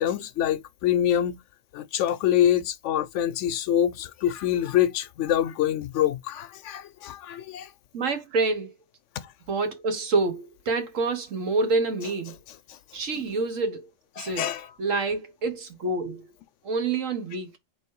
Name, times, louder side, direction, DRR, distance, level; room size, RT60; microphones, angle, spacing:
voice 1, 0.0-1.4 1.7-7.7 12.7-12.8 13.1-13.2 14.2-14.7, left 11 dB, 70° left, 0.9 m, -25 dB
voice 2, 7.9-8.7 9.5-12.3 12.9-13.9 14.2-14.5 14.8-16.2 16.6-17.6, right 3 dB, 80° right, 1.4 m, -27 dB
3.8 x 3.0 x 4.5 m
omnidirectional pair, 1.3 m